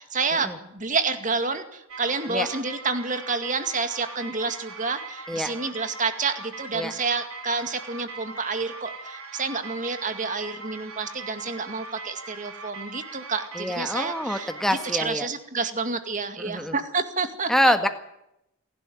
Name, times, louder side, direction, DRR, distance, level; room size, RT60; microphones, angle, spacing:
voice 1, 0.0-14.5 14.9-17.7, right 4 dB, 40° right, 8 dB, 2.2 m, -29 dB
sound 1, 1.9-15.0, right 3 dB, 90° right, 3.3 m, -41 dB
voice 2, 13.5-15.3 16.4-16.7 17.5-17.9, equal, ahead, 7 dB, 1.7 m, -25 dB
27.5 x 12.0 x 9.5 m, 0.82 s
head